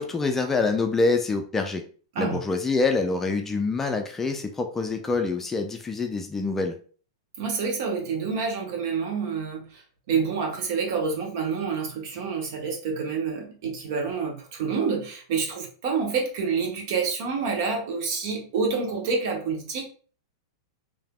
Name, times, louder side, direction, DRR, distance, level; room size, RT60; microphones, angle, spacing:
voice 1, 0.0-1.8 2.2-6.8, left 3 dB, 15° left, 0.4 m, -26 dB
voice 2, 7.4-9.8 10.1-19.9, right 5 dB, 55° right, 1.0 m, -28 dB
3.3 x 2.7 x 2.3 m
hypercardioid pair, 105°, 2 cm